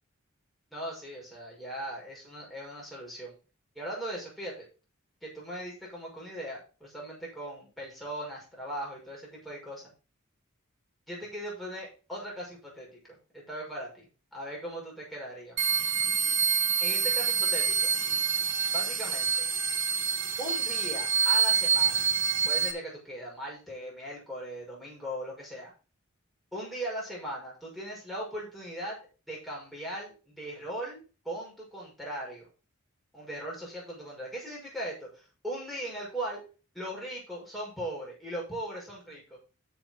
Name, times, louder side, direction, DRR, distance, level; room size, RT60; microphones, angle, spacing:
voice 1, 0.7-3.4 3.7-4.6 5.2-9.8 11.1-15.6 16.8-17.9 18.7-19.4 20.4-22.1 22.5-25.7 26.5-29.0 29.3-32.5 33.1-36.4 36.7-39.4, right 1 dB, ahead, -4 dB, 5.9 m, -39 dB
sound 1, 15.6-22.7, right 6 dB, 65° right, 1.5 m, -27 dB
11.0 x 7.1 x 3.9 m, 0.34 s
head